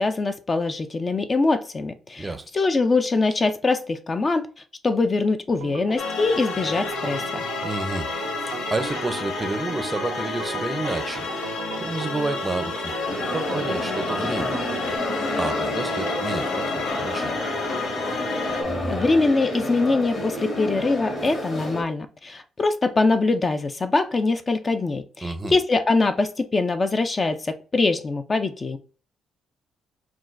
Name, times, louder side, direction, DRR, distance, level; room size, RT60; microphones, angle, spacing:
voice 1, 0.0-4.5 4.8-7.4 18.9-28.8, left 3 dB, 30° left, 0.4 m, -23 dB
voice 2, 2.2-2.5 7.6-8.1 8.5-11.2 11.8-12.9 13.3-14.7 15.4-17.4 25.2-25.6, right 3 dB, 20° right, 0.5 m, -30 dB
Organ, 5.6-15.0, right 9 dB, 90° right, 0.4 m, -37 dB
sound 1, 6.0-18.6, left 4 dB, 75° left, 0.8 m, -30 dB
sound 2, 13.1-21.8, left 1 dB, 45° left, 1.6 m, -29 dB
5.9 x 2.2 x 2.5 m
cardioid pair, 90°, 0 cm